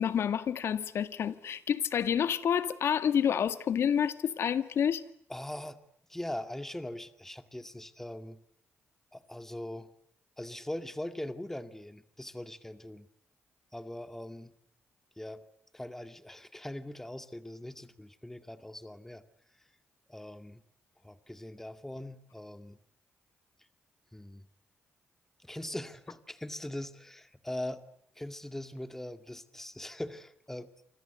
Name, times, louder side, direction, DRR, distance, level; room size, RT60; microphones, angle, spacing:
voice 1, 0.0-5.0, left 8 dB, 70° left, 1.8 m, -29 dB
voice 2, 5.3-5.8 6.1-8.4 9.1-9.9 10.4-13.1 13.7-14.5 15.2-15.4 15.7-19.2 20.1-20.6 21.0-22.8 24.1-24.5 25.4-27.8 28.2-30.7, left 1 dB, 10° left, 2.2 m, -41 dB
28.0 x 25.5 x 8.1 m
cardioid pair, 85°, 5 cm